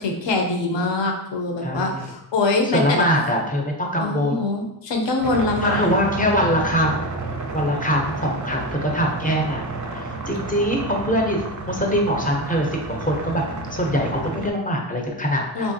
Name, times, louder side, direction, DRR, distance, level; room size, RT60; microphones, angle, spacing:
voice 1, 0.0-3.0 4.0-5.9 15.5-15.7, left 3 dB, 65° left, 2 dB, 0.6 m, -23 dB
voice 2, 1.6-2.0 2.7-4.4 5.6-7.1 7.5-9.6 9.9-13.4 13.7-15.7, equal, 20° left, 0 dB, 0.5 m, -23 dB
sound 1, 5.2-14.5, right 3 dB, 40° right, 0.5 m, -31 dB
3.2 x 2.5 x 2.6 m, 0.83 s
wide cardioid pair, 80°, 47 cm